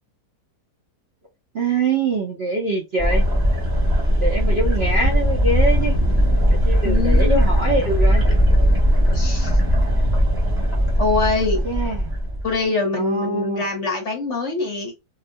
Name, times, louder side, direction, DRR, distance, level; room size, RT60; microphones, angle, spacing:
voice 1, 1.5-3.3 4.2-6.0 6.5-8.2 11.4-12.1 12.9-13.6, right 3 dB, 60° right, -1 dB, 0.7 m, -24 dB
sound 1, 3.0-12.6, equal, 15° right, 1.1 m, -18 dB
voice 2, 6.8-7.4 9.1-9.6 11.0-11.6 12.4-14.9, left 3 dB, 55° left, 2 dB, 1.0 m, -24 dB
2.8 x 2.4 x 2.6 m, 0.23 s
omnidirectional pair, 1.8 m